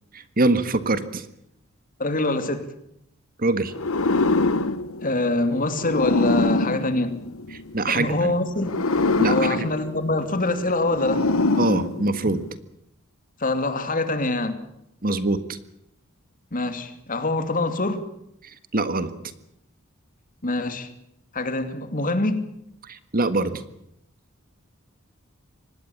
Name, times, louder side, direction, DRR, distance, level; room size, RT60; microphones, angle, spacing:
voice 1, 0.1-1.2 3.4-3.7 7.7-8.3 9.2-9.7 11.6-12.4 15.0-15.6 18.7-19.1 22.9-23.6, right 2 dB, 45° right, 12 dB, 1.6 m, -23 dB
voice 2, 2.0-2.7 5.0-7.1 7.9-8.8 9.3-11.3 13.4-14.6 16.5-18.0 20.4-20.9 21.3-22.4, left 2 dB, 40° left, 9 dB, 2.7 m, -24 dB
sound 1, 3.7-7.9 8.6-12.5, left 3 dB, 85° left, 1.3 m, -25 dB
25.5 x 19.5 x 7.3 m, 0.78 s
head